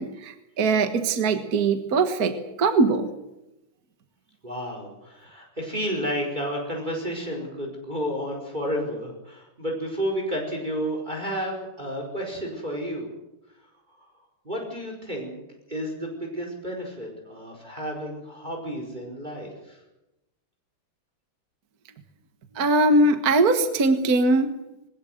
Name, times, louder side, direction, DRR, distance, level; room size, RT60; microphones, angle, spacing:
voice 1, 0.0-3.1 22.6-24.5, right 3 dB, 45° right, 8 dB, 1.8 m, -21 dB
voice 2, 4.4-13.1 14.0-14.1 14.4-19.8, equal, 20° right, 1 dB, 4.9 m, -31 dB
21.5 x 19.5 x 7.9 m, 0.94 s
omnidirectional pair, 2.4 m